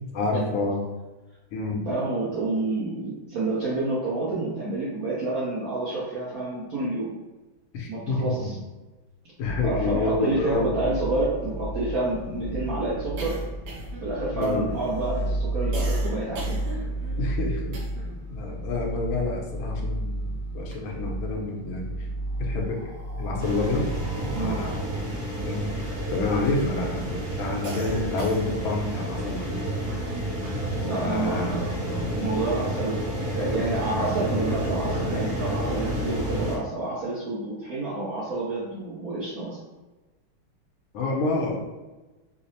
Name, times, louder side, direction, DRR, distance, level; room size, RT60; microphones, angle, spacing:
voice 1, 0.1-0.8 1.5-1.8 7.7-8.6 9.4-10.7 14.3-14.7 17.2-17.8 18.3-21.9 22.4-22.8 23.2-23.9 24.1-24.7 25.4-25.6 26.1-29.6 30.9-32.2 40.9-41.6, left 3 dB, 75° left, 0 dB, 1.4 m, -28 dB
voice 2, 1.9-7.1 7.9-8.6 9.6-13.4 14.0-16.6 24.3-24.7 30.8-31.7 32.1-33.0 33.3-39.6, right 2 dB, 65° right, -8 dB, 0.9 m, -29 dB
sound 1, 9.4-27.3, right 1 dB, 40° left, 0.9 m, -33 dB
sound 2, 10.0-10.1 10.4-10.5 10.8-18.3 18.5-20.1 20.5-21.4 22.1-26.6 27.0-28.8, right 1 dB, 85° right, 1.8 m, -40 dB
sound 3, 23.4-36.6, right 1 dB, 40° right, 1.0 m, -30 dB
5.0 x 2.0 x 2.7 m, 1.2 s
omnidirectional pair, 2.4 m